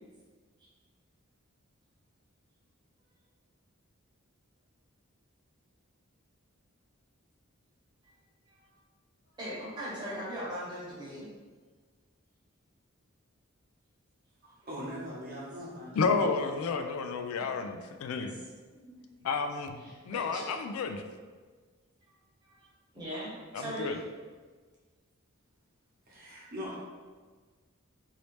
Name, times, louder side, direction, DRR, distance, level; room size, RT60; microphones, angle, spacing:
voice 1, 9.4-11.3 19.8-20.4 22.4-22.7 22.9-24.0, equal, 20° right, -8 dB, 1.0 m, -39 dB
voice 2, 14.4-16.1 18.7-18.9 26.1-26.8, equal, 45° right, -6 dB, 1.0 m, -41 dB
voice 3, 16.0-18.4 19.2-19.8 20.1-21.0 23.5-24.0, left 4 dB, 80° left, 6 dB, 0.3 m, -31 dB
3.0 x 2.8 x 3.1 m, 1.4 s
head